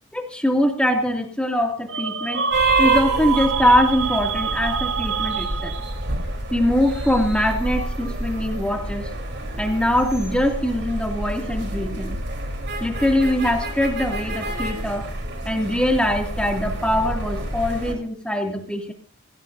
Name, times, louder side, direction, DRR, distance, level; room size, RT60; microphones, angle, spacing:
voice 1, 0.1-2.4 2.8-5.7 6.5-9.1 9.6-12.2 12.8-15.1 15.4-18.9, left 1 dB, 5° left, 3 dB, 2.4 m, -22 dB
sound 1, 1.9-6.1, right 6 dB, 75° right, 1.4 m, -26 dB
sound 2, 2.5-18.0, right 2 dB, 60° right, 3.7 m, -28 dB
25.0 x 17.0 x 2.7 m, 0.39 s
head